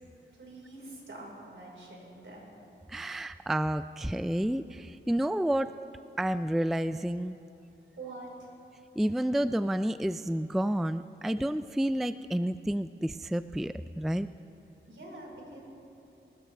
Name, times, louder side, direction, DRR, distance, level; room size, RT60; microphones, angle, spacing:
voice 1, 0.3-2.5 8.0-8.5 14.9-15.6, right 2 dB, 70° right, -2 dB, 4.6 m, -45 dB
voice 2, 2.9-5.7 6.2-7.3 9.0-14.3, right 1 dB, ahead, 13 dB, 0.3 m, -30 dB
28.5 x 13.5 x 3.4 m, 2.9 s
cardioid pair, 65°, 20 cm